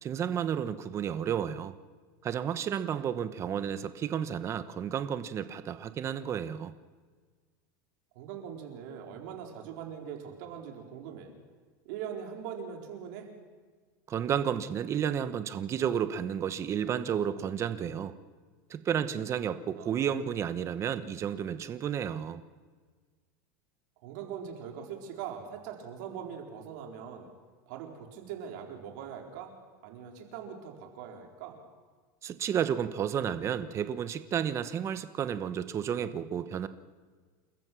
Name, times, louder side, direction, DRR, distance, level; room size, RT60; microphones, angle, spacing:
voice 1, 0.0-1.7 2.2-6.7 14.1-18.2 18.7-22.4 32.2-36.7, right 8 dB, 25° right, 12 dB, 1.0 m, -32 dB
voice 2, 8.1-11.3 11.8-13.3 19.7-20.0 24.0-27.3 27.7-29.5 29.8-31.6, right 8 dB, 65° right, 2 dB, 4.2 m, -42 dB
29.0 x 14.5 x 6.3 m, 1.5 s
supercardioid pair, 145°, 10 cm